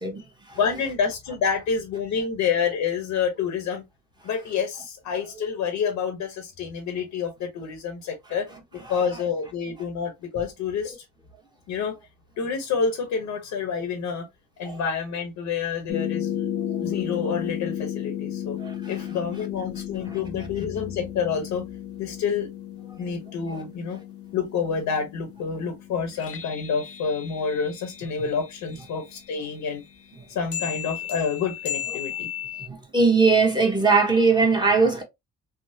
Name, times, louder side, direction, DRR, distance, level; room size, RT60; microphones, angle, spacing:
voice 1, 0.5-3.8 4.2-8.5 8.7-11.0 11.7-11.9 12.4-14.3 14.6-16.5 16.8-18.6 18.9-21.6 22.0-22.5 23.0-24.0 24.3-29.8 30.3-32.3, left 6 dB, 80° left, 0.9 m, -28 dB
sound 1, 15.9-28.9 30.5-32.7, left 10 dB, 50° left, 0.7 m, -34 dB
voice 2, 18.6-18.9 32.7-35.0, right 4 dB, 15° right, 1.0 m, -20 dB
3.5 x 2.0 x 2.7 m
cardioid pair, 90°, 30 cm